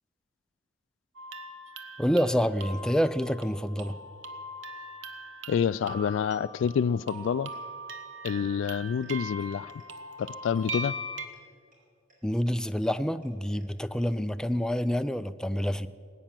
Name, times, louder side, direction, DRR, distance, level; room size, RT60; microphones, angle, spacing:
sound 1, 1.2-11.3, right 1 dB, 80° right, 1.0 m, -41 dB
voice 1, 2.0-4.0 12.2-15.9, equal, 5° left, 11 dB, 0.4 m, -27 dB
voice 2, 5.5-7.5 8.2-9.7 10.2-10.9, left 7 dB, 80° left, 18 dB, 0.3 m, -28 dB
sound 2, 7.1-7.2 7.5-7.6 7.9-8.0 8.3-8.4 8.6-8.7 9.0-9.1 9.4-9.5 9.8-9.9 10.2-10.3 10.6-10.7 10.9-11.0 11.3-11.4 11.7-11.8 12.1-12.2 12.5-12.6 12.8-12.9 13.2-13.3 13.6-13.7 14.0-14.1, right 1 dB, 50° right, 4.7 m, -62 dB
19.0 x 9.1 x 7.5 m, 2.2 s
head